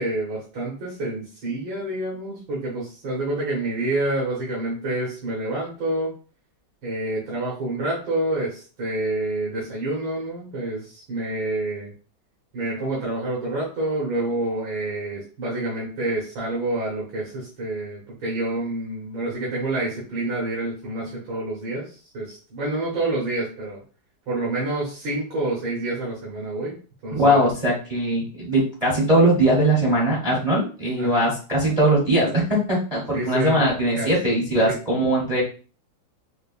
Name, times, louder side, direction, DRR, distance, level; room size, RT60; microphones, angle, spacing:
voice 1, 0.0-6.1 6.8-11.9 12.5-23.8 24.3-26.8 27.0-27.5 31.0-31.1 33.1-33.6 34.0-34.1 34.6-34.7, right 2 dB, 80° right, -6 dB, 2.0 m, -28 dB
voice 2, 27.1-35.4, right 1 dB, 30° right, -5 dB, 0.7 m, -20 dB
5.1 x 2.2 x 2.5 m, 0.38 s
omnidirectional pair, 2.1 m